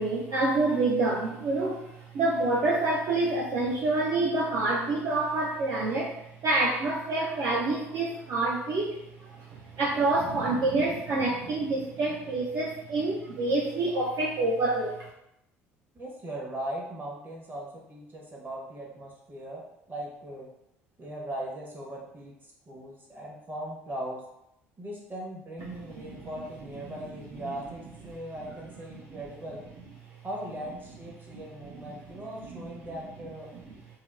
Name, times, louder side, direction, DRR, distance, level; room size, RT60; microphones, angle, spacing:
voice 1, 0.0-6.2 6.4-15.0 25.7-25.8 26.0-26.2 28.1-28.2 29.1-29.2 31.3-31.4 32.5-32.6, right 2 dB, 55° right, -4 dB, 0.4 m, -27 dB
voice 2, 15.9-19.6 19.9-20.5 21.0-24.2 24.8-29.7 30.2-33.5, right 1 dB, 30° right, -2 dB, 0.9 m, -39 dB
2.8 x 2.1 x 2.4 m, 0.84 s
figure-of-eight pair, 55°, 7 cm